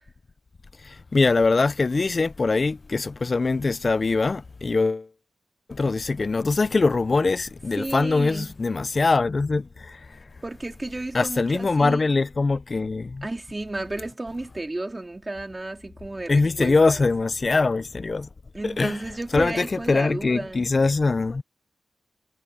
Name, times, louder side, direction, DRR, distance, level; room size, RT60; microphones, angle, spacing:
voice 1, 0.8-5.1 5.7-10.2 11.1-13.3 16.3-18.3 18.6-19.0 19.3-21.4, left 3 dB, 40° left, 0.5 m, -23 dB
voice 2, 7.8-8.5 10.4-12.0 13.2-17.0 18.5-20.7, right 2 dB, 25° right, 3.4 m, -33 dB
wide cardioid pair, 85°, 0 cm